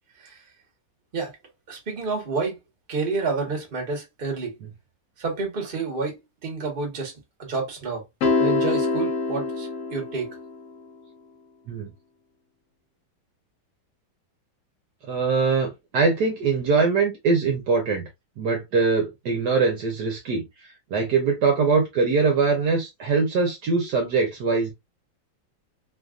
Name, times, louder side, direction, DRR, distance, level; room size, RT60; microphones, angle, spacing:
voice 1, 1.7-2.6 2.9-4.6 5.2-7.1 7.4-8.0 8.4-10.3, right 4 dB, 30° right, 1.1 m, -29 dB
sound 1, 8.2-10.6, left 3 dB, 60° left, 1.0 m, -24 dB
voice 2, 15.1-18.1 18.4-20.4 20.9-24.7, right 4 dB, 65° right, 1.2 m, -22 dB
3.3 x 2.5 x 2.3 m
omnidirectional pair, 2.1 m